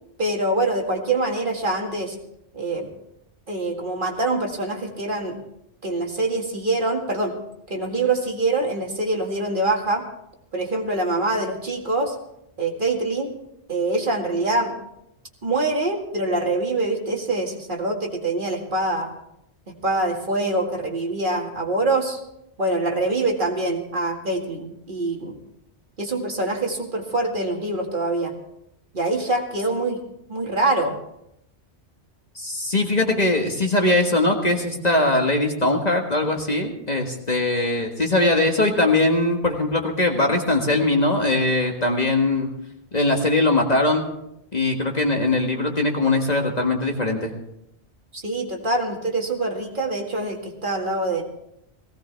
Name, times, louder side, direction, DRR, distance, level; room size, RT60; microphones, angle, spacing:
voice 1, 0.2-2.2 2.5-2.9 3.5-5.4 5.8-7.4 7.7-10.0 10.5-12.2 12.6-13.3 13.7-14.8 15.4-19.1 19.7-22.2 22.6-25.4 26.0-28.3 28.9-30.0 30.3-30.9 48.1-51.2, right 2 dB, 50° right, 1 dB, 2.2 m, -24 dB
voice 2, 32.3-42.5 42.9-44.0 44.5-47.4, left 2 dB, 40° left, 2 dB, 1.7 m, -21 dB
18.0 x 16.5 x 3.4 m, 0.79 s
omnidirectional pair, 1.1 m